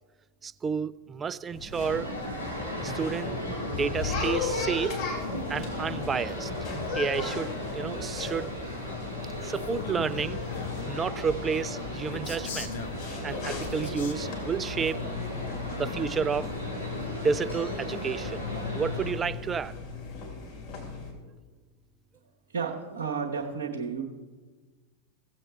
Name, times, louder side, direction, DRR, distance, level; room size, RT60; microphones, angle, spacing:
voice 1, 0.4-2.1 2.8-3.4 3.7-5.0 5.5-6.5 6.9-8.5 9.4-10.4 10.9-12.7 13.2-15.0 15.8-16.5 17.2-18.4 18.7-19.7, right 6 dB, 20° right, 16 dB, 0.3 m, -30 dB
sound 1, 1.5-21.1, left 4 dB, 45° left, 2.6 m, -37 dB
sound 2, 1.8-19.1, left 1 dB, 85° left, 1.9 m, -36 dB
Male speech man speaking, 9.5-10.9 12.1-14.5, left 5 dB, 60° left, 1.1 m, -39 dB
voice 2, 22.5-24.0, right 6 dB, 65° right, -2 dB, 1.0 m, -32 dB
16.5 x 7.6 x 3.3 m, 1.4 s
figure-of-eight pair, 90°, 0 cm